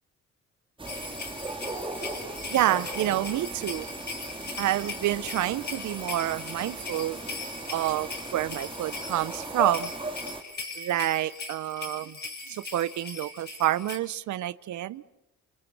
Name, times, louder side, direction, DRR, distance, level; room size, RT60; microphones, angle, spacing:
sound 1, 0.8-10.4, right 2 dB, 15° right, 2.9 m, -37 dB
sound 2, 0.9-14.0, left 3 dB, 35° left, 5.4 m, -40 dB
voice 1, 2.5-3.9 4.6-7.2 7.7-9.9 10.8-12.2 12.5-15.0, right 13 dB, 75° right, 0.8 m, -28 dB
29.0 x 25.0 x 6.2 m
cardioid pair, 90°, 30 cm